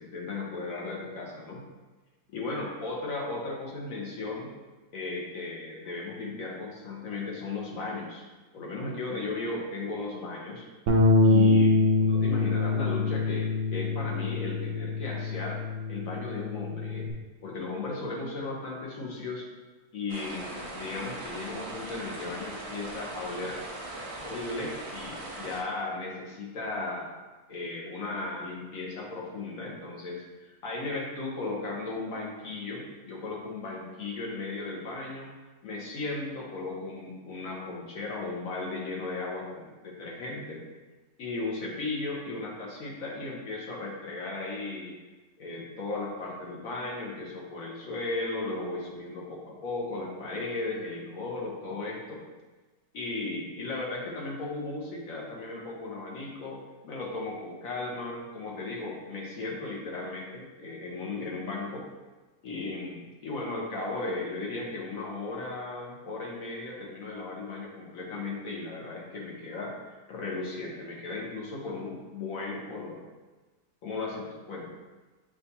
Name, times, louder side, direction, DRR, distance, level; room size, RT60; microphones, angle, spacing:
voice 1, 0.0-1.6 2.3-4.5 4.9-8.3 8.5-10.7 11.2-15.6 15.9-17.1 17.4-19.5 19.9-23.6 24.2-27.1 27.5-35.3 35.6-40.6 41.2-44.9 45.4-52.2 52.9-61.8 62.4-73.0 73.8-74.6, left 3 dB, 70° left, -3 dB, 1.3 m, -36 dB
Bass guitar, 10.9-17.1, left 3 dB, 75° right, 1.0 m, -24 dB
sound 1, 20.1-25.6, right 1 dB, 60° right, 0.3 m, -40 dB
6.7 x 2.5 x 2.8 m, 1.2 s
omnidirectional pair, 1.5 m